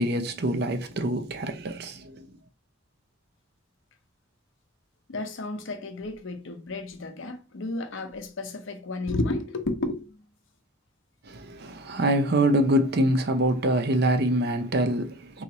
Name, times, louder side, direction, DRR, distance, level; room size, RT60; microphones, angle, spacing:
voice 1, 0.0-2.3 11.3-15.4, right 1 dB, 50° right, 0.6 m, -25 dB
voice 2, 5.1-10.2, left 2 dB, 70° left, 0.7 m, -32 dB
3.9 x 3.0 x 2.8 m
head